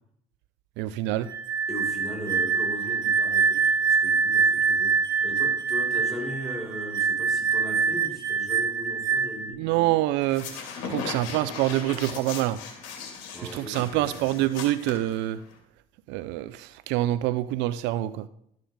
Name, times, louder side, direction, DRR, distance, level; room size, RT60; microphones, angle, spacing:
voice 1, 0.8-1.3 9.6-10.5 10.8-12.6 13.5-15.4 16.1-18.3, right 15 dB, 80° right, 14 dB, 0.5 m, -26 dB
sound 1, 1.3-9.5, right 5 dB, 25° right, 2.9 m, -25 dB
voice 2, 1.7-9.6 13.3-14.2, equal, ahead, -2 dB, 5.6 m, -38 dB
sound 2, 10.2-15.6, left 6 dB, 80° left, 2.5 m, -38 dB
13.0 x 9.0 x 3.8 m, 0.71 s
supercardioid pair, 75°, 18 cm